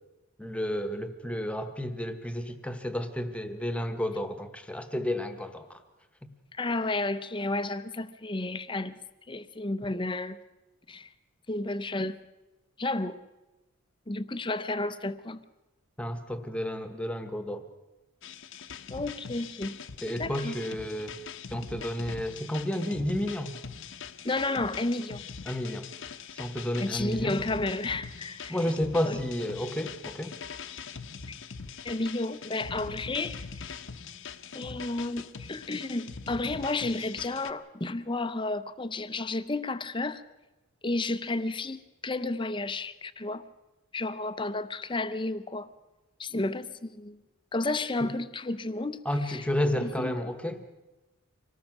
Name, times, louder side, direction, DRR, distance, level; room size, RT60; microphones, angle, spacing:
voice 1, 0.4-5.8 16.0-17.7 20.0-21.2 21.5-23.6 25.5-25.9 26.3-27.4 28.5-30.3 49.0-50.6, left 1 dB, 5° left, 1.2 m, -31 dB
voice 2, 6.5-9.0 9.3-10.4 10.9-11.1 11.5-12.2 12.8-13.2 14.1-15.4 18.9-19.8 20.2-20.5 24.2-25.2 26.8-28.6 29.1-29.2 31.3-31.4 31.8-33.7 34.5-40.2 40.8-43.5 43.9-45.7 46.2-47.2 47.5-49.4 49.8-50.3, left 2 dB, 20° left, 0.7 m, -32 dB
sound 1, 18.2-37.5, left 5 dB, 55° left, 0.9 m, -42 dB
25.5 x 18.5 x 6.1 m
head